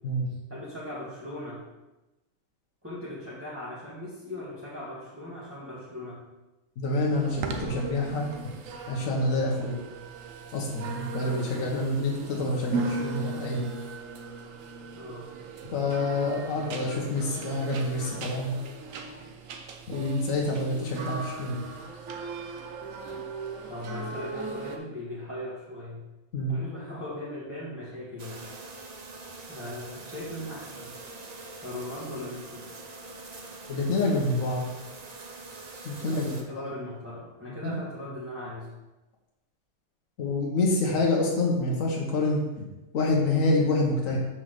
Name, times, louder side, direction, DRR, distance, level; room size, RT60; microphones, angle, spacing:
voice 1, 0.5-1.6 2.8-6.2 14.9-15.3 23.7-26.0 26.5-28.5 29.5-30.9 31.6-32.6 36.0-38.7, left 1 dB, 10° right, -9 dB, 1.5 m, -39 dB
voice 2, 6.8-8.3 8.9-9.8 10.5-13.7 15.7-18.5 19.9-21.6 26.3-26.5 33.7-34.7 35.8-36.7 37.6-37.8 40.2-42.4 42.9-44.2, left 2 dB, 75° left, -2 dB, 1.5 m, -27 dB
sound 1, 7.1-24.8, right 4 dB, 80° right, 1.1 m, -38 dB
sound 2, 28.2-36.4, right 3 dB, 35° right, 0.7 m, -44 dB
5.7 x 4.5 x 6.4 m, 1.0 s
omnidirectional pair, 1.4 m